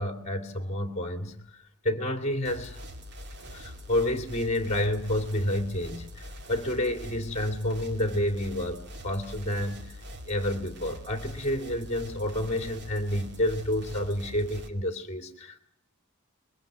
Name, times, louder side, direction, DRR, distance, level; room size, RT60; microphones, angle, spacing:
voice 1, 0.0-1.4 1.8-2.8 3.5-9.9 10.3-15.6, left 1 dB, 30° left, 7 dB, 2.5 m, -29 dB
sound 1, 2.4-14.7, equal, 50° right, 2.3 m, -43 dB
23.0 x 22.0 x 6.2 m, 0.80 s
head